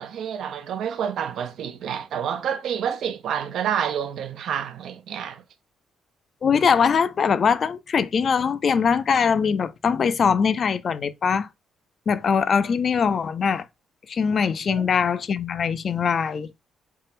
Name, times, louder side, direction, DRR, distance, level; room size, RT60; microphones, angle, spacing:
voice 1, 0.0-5.4 14.7-14.9, right 8 dB, 70° right, 0.5 m, -28 dB
voice 2, 6.4-11.5 12.1-13.7 14.1-16.5, left 6 dB, 50° left, 0.4 m, -22 dB
3.6 x 2.1 x 4.0 m
cardioid pair, 90°, 0 cm